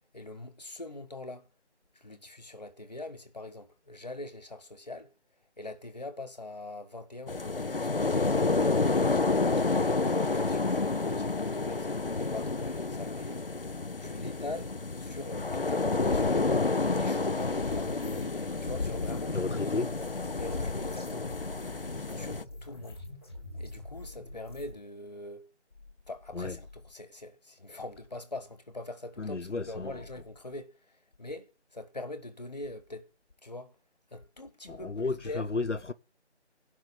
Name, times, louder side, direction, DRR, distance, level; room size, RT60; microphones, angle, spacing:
voice 1, 0.1-1.5 1.9-5.1 5.6-8.0 9.1-13.5 14.0-16.6 17.0-19.7 20.4-21.4 22.1-23.0 23.6-25.5 26.1-33.1 33.4-33.8 34.1-35.5, left 2 dB, 35° left, 1.8 m, -43 dB
sound 1, 7.3-22.4, left 3 dB, 50° left, 0.6 m, -29 dB
sound 2, 17.4-24.8, left 1 dB, 20° left, 2.5 m, -45 dB
voice 2, 19.3-19.9 26.3-26.6 29.2-30.0 34.7-35.9, left 3 dB, 80° left, 1.2 m, -33 dB
16.5 x 6.0 x 6.9 m
figure-of-eight pair, 175°, 35 cm